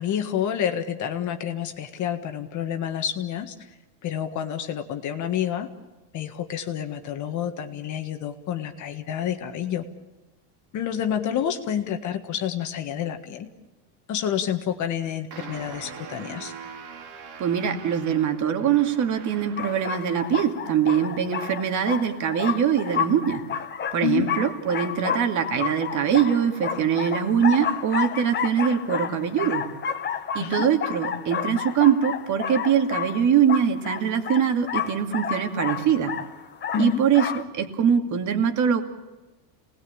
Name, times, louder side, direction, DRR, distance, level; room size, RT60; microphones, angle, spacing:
voice 1, 0.0-3.5 4.0-5.7 6.1-9.8 10.7-13.5 14.1-16.5 24.0-24.3 30.4-30.7 36.7-37.0, left 9 dB, 40° left, 6 dB, 1.7 m, -28 dB
sound 1, 15.3-20.1, right 6 dB, 65° right, 3.9 m, -42 dB
voice 2, 17.4-23.5 23.9-29.6 30.3-36.1 36.8-38.8, right 8 dB, 40° right, 6 dB, 2.5 m, -23 dB
sound 2, 19.6-37.4, left 8 dB, 20° left, 1.2 m, -31 dB
28.0 x 19.5 x 8.8 m, 1.2 s
cardioid pair, 150°, 47 cm